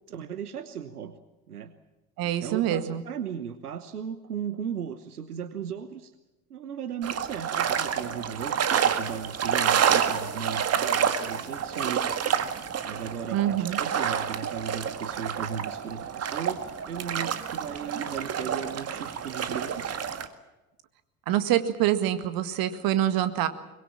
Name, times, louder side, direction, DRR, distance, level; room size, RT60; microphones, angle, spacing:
voice 1, 0.1-1.1 1.5-1.7 2.2-6.1 6.5-12.5 12.9-20.0, right 8 dB, 80° right, 12 dB, 1.2 m, -37 dB
voice 2, 2.2-3.0 13.3-13.8 21.3-23.5, right 12 dB, 50° right, 10 dB, 2.0 m, -25 dB
sound 1, 7.0-20.3, right 8 dB, 35° right, 1.9 m, -28 dB
23.5 x 22.0 x 7.3 m, 1.1 s
figure-of-eight pair, 65°, 44 cm